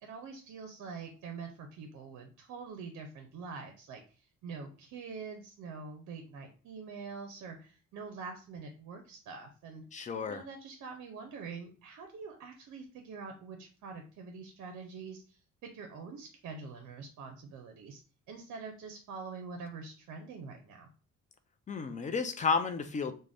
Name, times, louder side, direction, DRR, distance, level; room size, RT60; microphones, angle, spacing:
voice 1, 0.0-4.0 4.4-9.8 10.3-18.0 18.3-20.9, right 5 dB, 70° right, 4 dB, 0.5 m, -45 dB
voice 2, 9.9-10.4 21.7-23.1, left 5 dB, 25° left, 9 dB, 0.4 m, -32 dB
2.5 x 2.1 x 3.3 m, 0.37 s
cardioid pair, 90°, 30 cm